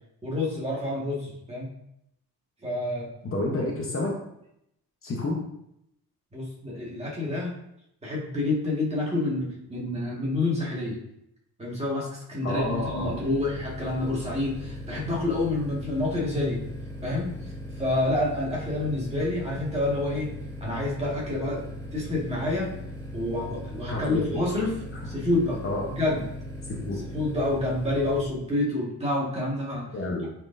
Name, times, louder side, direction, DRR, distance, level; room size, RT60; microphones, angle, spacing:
voice 1, 0.2-1.7 2.6-3.1 6.3-7.5 8.0-11.0 11.6-16.6 17.0-17.3 17.8-20.3 20.6-21.6 21.9-22.7 23.1-25.6 25.9-26.2 27.1-29.9, left 2 dB, 15° right, -5 dB, 1.9 m, -28 dB
voice 2, 3.2-4.2 5.0-5.4 12.4-13.1 23.9-24.4 25.6-25.8 26.7-27.0 29.9-30.2, left 2 dB, 35° left, -1 dB, 1.0 m, -29 dB
sound 1, 12.6-28.2, left 1 dB, 10° left, 2.2 m, -39 dB
9.2 x 4.5 x 2.7 m, 0.78 s
cardioid pair, 160°, 37 cm